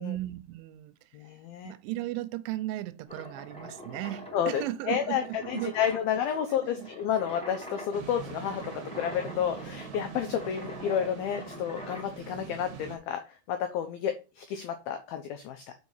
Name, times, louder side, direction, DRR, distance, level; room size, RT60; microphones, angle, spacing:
voice 1, 0.0-0.9 1.6-5.8 6.5-6.9, right 15 dB, 90° right, 3.2 m, -36 dB
voice 2, 1.1-1.7 4.3-15.8, left 9 dB, 90° left, 2.1 m, -31 dB
sound 1, 3.1-12.1, equal, ahead, 2.2 m, -44 dB
sound 2, 7.9-13.0, right 7 dB, 60° right, 2.0 m, -43 dB
6.3 x 5.3 x 5.6 m
omnidirectional pair, 5.4 m